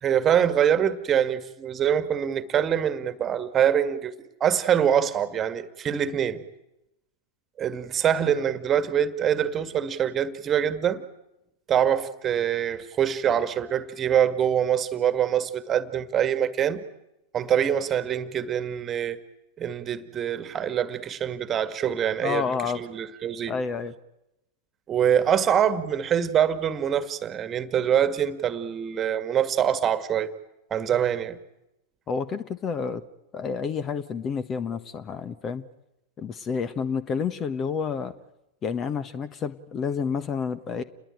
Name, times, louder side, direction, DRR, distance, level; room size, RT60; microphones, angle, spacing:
voice 1, 0.0-4.1 4.4-6.4 7.6-11.0 11.7-16.8 17.3-19.2 19.6-23.6 24.9-30.3 30.7-31.4, right 9 dB, 25° right, 1.9 m, -24 dB
voice 2, 22.2-22.8 23.5-23.9 32.1-33.0 33.3-35.6 36.2-38.1 38.6-40.8, left 6 dB, 25° left, 1.3 m, -29 dB
29.5 x 21.0 x 9.2 m
figure-of-eight pair, 90°, 0 cm